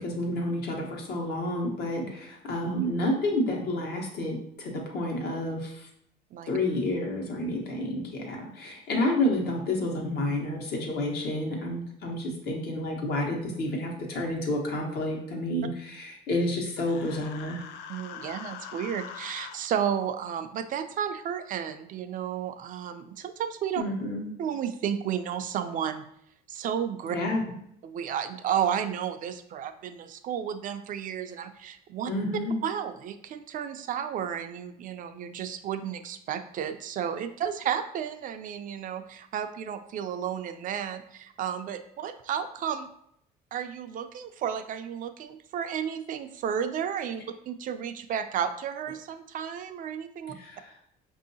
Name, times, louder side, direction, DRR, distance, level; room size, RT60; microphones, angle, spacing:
voice 1, 0.0-5.9 6.5-17.6 23.8-24.3 27.1-27.4 32.1-32.6 50.3-50.7, left 1 dB, 70° left, 0 dB, 1.1 m, -30 dB
Human voice, 16.8-19.6, left 8 dB, 85° left, 0.4 m, -42 dB
voice 2, 17.9-23.8 24.4-26.0 26.5-27.2 27.8-32.1 32.6-42.9 43.5-50.3, right 8 dB, 50° right, 9 dB, 0.4 m, -32 dB
5.4 x 2.7 x 2.7 m, 0.71 s
cardioid pair, 110°, 17 cm